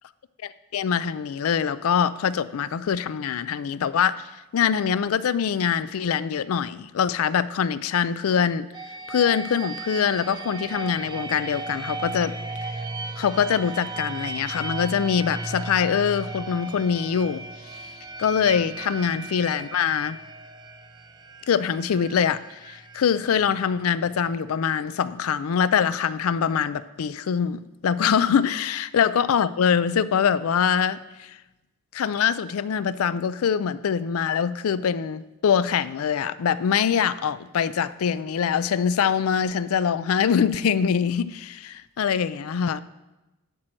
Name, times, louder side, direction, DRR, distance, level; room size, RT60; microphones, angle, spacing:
voice 1, 0.4-8.7 9.1-12.4 12.6-12.8 13.2-17.8 18.2-20.2 21.5-31.4 31.9-42.8, left 7 dB, 85° left, 0.4 m, -24 dB
sound 1, 8.7-24.4, right 3 dB, 20° right, 0.4 m, -36 dB
11.5 x 4.5 x 6.3 m
head